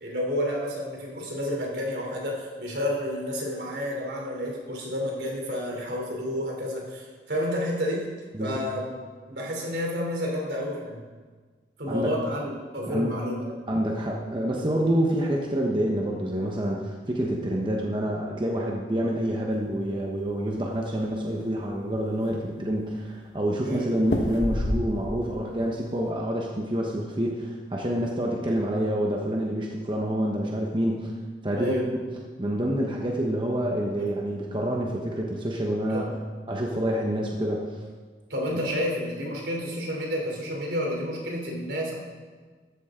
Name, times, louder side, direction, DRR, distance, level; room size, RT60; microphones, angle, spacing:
voice 1, 0.0-8.1 8.4-9.0 9.3-11.1 11.8-13.4 23.6-24.0 31.5-31.8 34.0-34.1 35.9-36.1 38.3-42.0, equal, 75° right, -1 dB, 3.4 m, -30 dB
voice 2, 11.9-12.2 12.9-13.1 13.7-31.1 31.4-31.8 32.4-36.1 36.5-37.7, equal, 30° right, -1 dB, 1.1 m, -27 dB
sound 1, 20.2-21.1 21.5-21.6 21.9-22.6 24.0-25.3 25.6-26.1, left 1 dB, 85° left, 1.4 m, -29 dB
14.0 x 11.5 x 3.8 m, 1.4 s
head